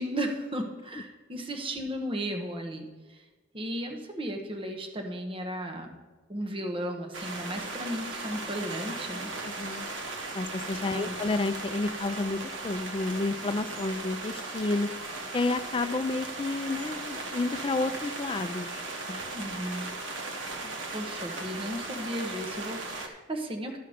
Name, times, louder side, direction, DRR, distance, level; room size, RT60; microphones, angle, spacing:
voice 1, 0.0-3.2 3.5-5.9 6.3-9.3 10.9-11.1 19.3-19.9 20.9-23.8, equal, 30° right, 2 dB, 1.0 m, -35 dB
sound 1, 7.1-23.1, right 2 dB, 80° right, 1.1 m, -37 dB
voice 2, 9.4-9.9 10.3-14.9 15.3-19.2 20.6-20.8, left 2 dB, 25° left, 11 dB, 0.4 m, -31 dB
12.0 x 5.7 x 5.0 m, 1.3 s
head